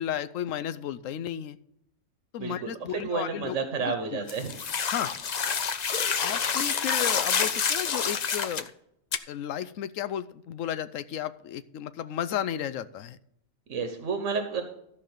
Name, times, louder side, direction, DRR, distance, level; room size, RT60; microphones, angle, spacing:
voice 1, 0.0-1.6 2.3-3.6 3.8-4.2 4.9-5.2 6.2-8.7 9.3-13.2, left 10 dB, 90° left, 14 dB, 1.0 m, -33 dB
voice 2, 2.4-4.5 13.7-14.6, right 5 dB, 75° right, 6 dB, 1.5 m, -31 dB
sound 1, 4.3-8.7 9.1-9.2, left 6 dB, 45° left, 0.6 m, -28 dB
14.0 x 5.5 x 6.5 m, 0.75 s
omnidirectional pair, 1.3 m